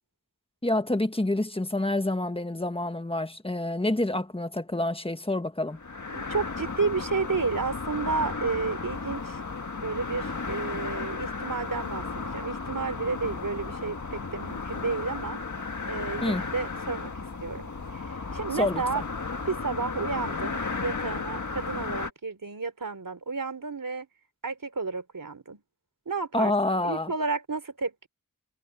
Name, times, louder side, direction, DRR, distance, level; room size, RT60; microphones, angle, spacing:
voice 1, 0.6-5.8 16.2-16.4 18.5-19.0 26.3-27.1, left 2 dB, 15° left, 1.4 m, -28 dB
sound 1, 5.7-22.1, left 4 dB, 60° left, 1.7 m, -34 dB
voice 2, 6.1-9.4 9.7-15.4 15.9-17.1 17.4-19.0 19.5-24.1 24.4-25.6 26.0-26.5 26.8-28.1, right 4 dB, 80° right, 3.4 m, -31 dB
wide cardioid pair, 65°, 32 cm